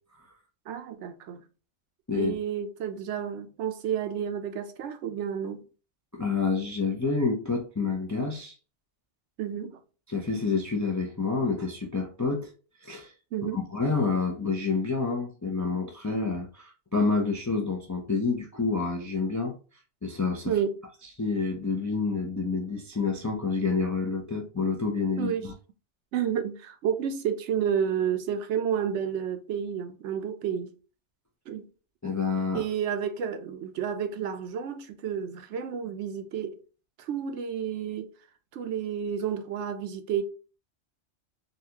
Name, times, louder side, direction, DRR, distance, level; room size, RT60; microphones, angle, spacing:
voice 1, 0.7-1.4 2.2-5.6 9.4-9.8 13.3-13.6 20.5-20.7 25.2-25.5 26.1-30.7 31.5-31.7 32.5-36.6 37.0-38.1 38.5-40.2, right 8 dB, 75° right, 0.9 m, -30 dB
voice 2, 6.1-8.5 10.1-12.5 12.8-13.1 13.5-19.6 20.0-20.5 21.2-25.5 32.0-32.6, left 4 dB, 30° left, 0.3 m, -28 dB
4.0 x 2.3 x 2.7 m
omnidirectional pair, 1.2 m